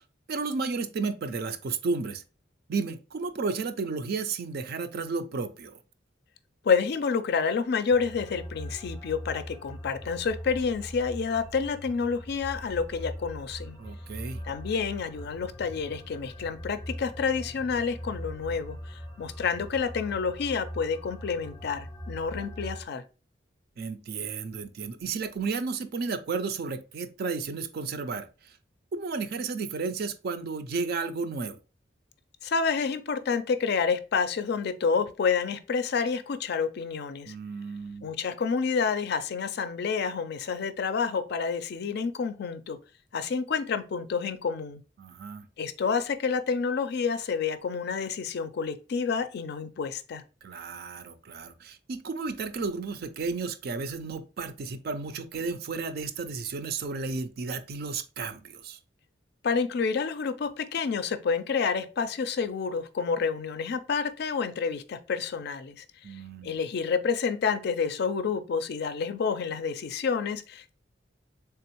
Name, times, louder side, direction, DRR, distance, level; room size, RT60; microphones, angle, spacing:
voice 1, 0.3-2.2 2.7-5.8 13.8-14.4 23.8-28.5 28.9-31.6 37.3-38.1 45.0-45.5 50.4-58.8 66.0-66.6, right 4 dB, 55° right, 0.4 m, -33 dB
voice 2, 6.6-13.8 14.4-23.0 32.4-37.3 38.0-42.8 43.1-44.8 45.6-50.2 59.4-65.8 66.4-70.7, left 5 dB, 60° left, 0.4 m, -29 dB
sound 1, 7.9-22.8, equal, 15° left, 0.7 m, -41 dB
3.4 x 3.4 x 2.9 m
head